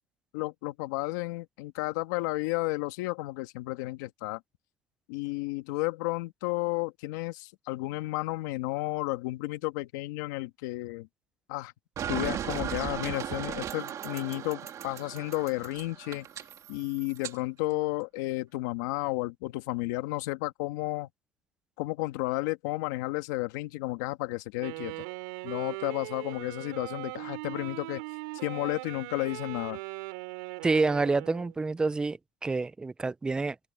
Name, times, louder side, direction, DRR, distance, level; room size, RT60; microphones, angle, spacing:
voice 1, 0.3-4.4 5.1-11.1 11.5-11.7 12.1-16.3 16.7-21.1 21.8-25.0 25.4-28.0 28.4-29.8, left 20 dB, 80° left, 2.1 m, -32 dB
sound 1, 12.0-17.4, right 10 dB, 35° right, 2.6 m, -37 dB
Wind instrument woodwind instrument, 24.6-31.6, right 26 dB, 80° right, 4.5 m, -40 dB
voice 2, 30.6-33.6, right 3 dB, 10° right, 0.3 m, -28 dB
open air
cardioid pair, 155°, 10 cm